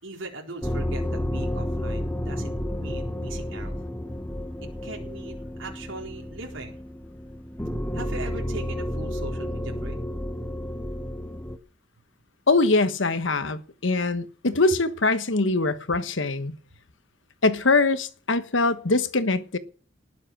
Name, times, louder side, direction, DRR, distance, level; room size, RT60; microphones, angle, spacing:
voice 1, 0.0-3.7 4.8-6.8 7.9-10.0, right 2 dB, 85° right, 4.1 m, -40 dB
sound 1, 0.6-11.6, left 1 dB, 10° left, 1.2 m, -31 dB
voice 2, 12.5-16.5 17.4-19.6, left 3 dB, 75° left, 1.3 m, -23 dB
19.5 x 7.5 x 6.1 m
head